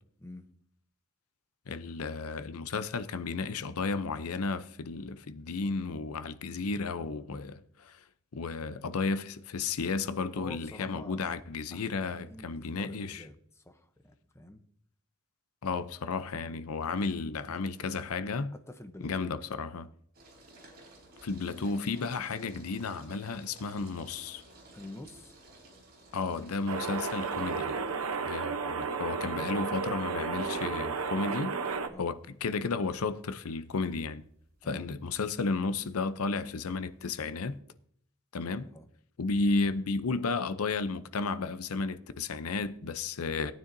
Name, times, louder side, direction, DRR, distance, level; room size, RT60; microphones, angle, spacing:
voice 1, 1.7-8.0 8.3-13.2 15.6-18.5 19.0-19.9 21.2-24.4 26.1-27.8 28.2-31.6 32.0-34.2 34.6-37.6 38.3-38.7 39.2-43.5, left 4 dB, 80° left, 0.6 m, -33 dB
voice 2, 10.3-11.2 11.7-14.6 18.5-19.3 24.7-25.4 31.9-32.1 34.6-34.8 38.7-38.9, left 2 dB, 10° left, 0.8 m, -48 dB
sound 1, 20.1-37.6, right 2 dB, 50° right, 3.5 m, -57 dB
sound 2, 26.7-31.9, right 5 dB, 75° right, 0.9 m, -33 dB
17.0 x 9.3 x 2.7 m
head